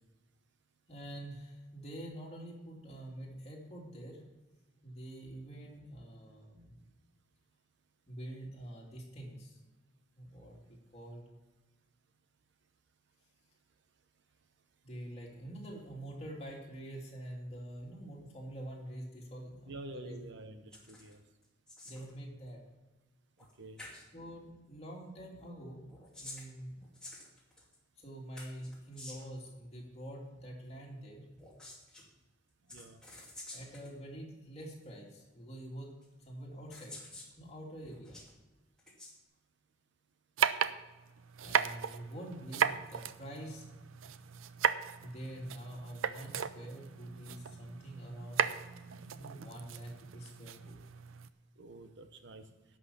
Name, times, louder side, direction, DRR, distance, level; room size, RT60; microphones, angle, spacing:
voice 1, 0.9-4.2 4.8-6.8 8.1-9.6 10.1-11.3 14.8-20.1 21.8-22.6 24.1-25.9 26.2-26.7 28.0-31.3 32.6-32.7 33.5-38.2 41.4-43.7 45.0-48.5 49.1-50.8, right 1 dB, 30° left, -2 dB, 2.7 m, -46 dB
voice 2, 19.6-21.2 23.6-23.8 32.7-33.0 44.1-44.3 51.6-52.4, right 2 dB, 65° right, 8 dB, 0.9 m, -48 dB
sound 1, 20.7-21.1 21.4-22.1 23.4-23.5 23.8-24.1 25.8-27.8 28.4-29.4 31.3-32.0 32.7-33.9 34.8-34.9 36.0-36.1 36.7-37.3 37.8-38.3 38.8-39.1, left 2 dB, 5° left, 2.5 m, -50 dB
sound 2, 40.4-51.3, right 7 dB, 90° right, 0.5 m, -36 dB
11.5 x 6.2 x 6.8 m, 1.1 s
head